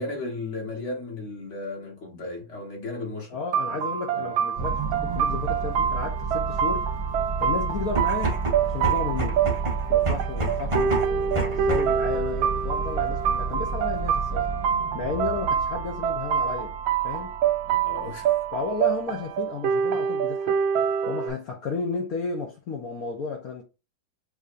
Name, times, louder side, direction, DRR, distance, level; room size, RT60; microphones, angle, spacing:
voice 1, 0.0-3.4 3.7-3.8 4.1-4.3 17.6-18.3, left 2 dB, 40° left, 1.4 m, -35 dB
voice 2, 3.3-6.9 7.4-9.4 9.9-14.6 14.9-16.7 17.0-17.4 18.0-18.2 18.5-20.6 21.1-23.6, left 4 dB, 65° left, 0.9 m, -33 dB
sound 1, 3.5-21.3, right 8 dB, 75° right, 1.3 m, -26 dB
sound 2, 4.6-19.1, right 4 dB, 55° right, 1.1 m, -33 dB
sound 3, 7.8-12.1, right 2 dB, 40° right, 0.4 m, -29 dB
6.5 x 2.6 x 2.5 m
omnidirectional pair, 2.4 m